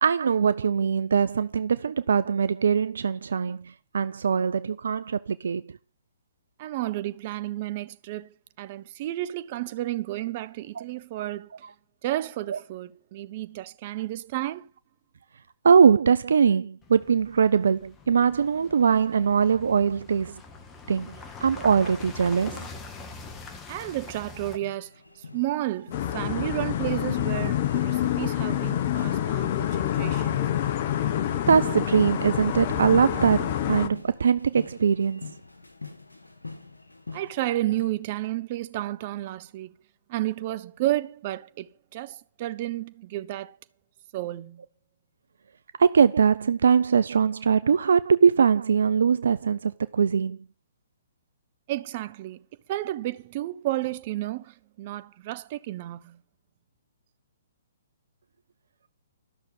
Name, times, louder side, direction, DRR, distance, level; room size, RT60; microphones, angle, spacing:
voice 1, 0.0-5.7 10.8-10.9 12.5-12.6 15.6-20.4 20.9-22.7 31.5-35.3 45.8-50.4, right 6 dB, 65° right, 0.5 m, -22 dB
voice 2, 6.6-11.5 12.0-14.7 23.7-24.9 25.3-30.5 37.1-39.7 40.1-43.6 44.1-44.6 51.7-52.4 52.7-56.2, right 15 dB, 40° right, 0.8 m, -32 dB
sound 1, 16.8-24.6, left 3 dB, 20° left, 1.7 m, -44 dB
sound 2, 24.3-37.9, left 4 dB, 90° left, 2.0 m, -46 dB
sound 3, 25.9-33.9, left 11 dB, 45° left, 1.1 m, -27 dB
13.0 x 6.6 x 7.6 m
figure-of-eight pair, 125°, 0 cm